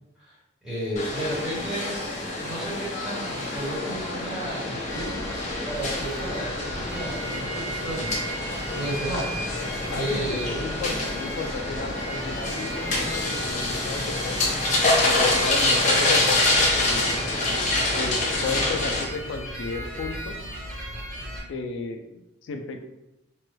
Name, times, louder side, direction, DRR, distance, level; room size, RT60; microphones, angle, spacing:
voice 1, 0.6-1.9 2.4-8.1 8.7-9.4 9.9-10.6, right 1 dB, 5° right, -10 dB, 1.3 m, -33 dB
sound 1, 1.0-19.0, left 2 dB, 40° left, 0.6 m, -26 dB
sound 2, 4.8-21.4, right 1 dB, 40° right, 1.4 m, -36 dB
voice 2, 9.9-14.4 15.0-17.2 17.9-20.4 21.5-22.8, left 4 dB, 80° left, 4 dB, 0.3 m, -34 dB
3.1 x 2.2 x 3.1 m, 0.91 s
head